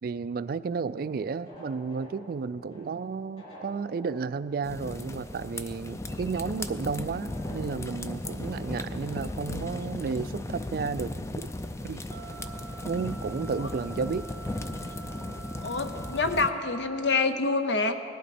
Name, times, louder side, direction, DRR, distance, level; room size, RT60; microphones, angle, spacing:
voice 1, 0.0-11.5 11.8-12.0 12.8-14.2, right 5 dB, 55° right, 15 dB, 0.3 m, -32 dB
sound 1, 0.9-5.6 5.9-6.0 7.3-10.2 10.7-10.8 11.0-11.1, equal, 35° left, 3.1 m, -51 dB
sound 2, 4.6-16.5, left 2 dB, 15° left, 0.4 m, -36 dB
sound 3, 12.1-17.1, right 4 dB, 70° right, 0.8 m, -46 dB
voice 2, 15.6-17.9, left 3 dB, 70° left, 8 dB, 0.8 m, -27 dB
18.5 x 12.0 x 4.2 m, 2.6 s
head